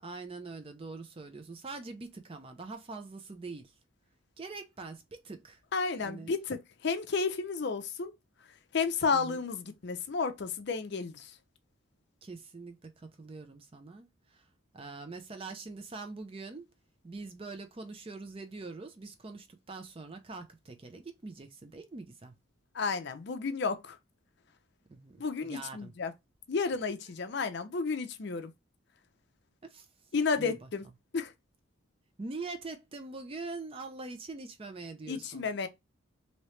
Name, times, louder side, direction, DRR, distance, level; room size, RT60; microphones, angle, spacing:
voice 1, 0.0-3.7 4.4-5.6 6.0-6.3 9.1-9.4 12.2-14.5 14.7-16.7 17.0-22.3 24.9-25.9 29.6-29.9 30.4-30.7 32.2-35.7, right 3 dB, 25° right, 0.4 m, -44 dB
voice 2, 5.7-8.1 8.7-11.3 22.7-24.0 25.2-26.1 26.5-28.5 30.1-30.8 31.1-31.3 35.1-35.7, left 4 dB, 55° left, 0.5 m, -32 dB
3.0 x 2.8 x 3.1 m
head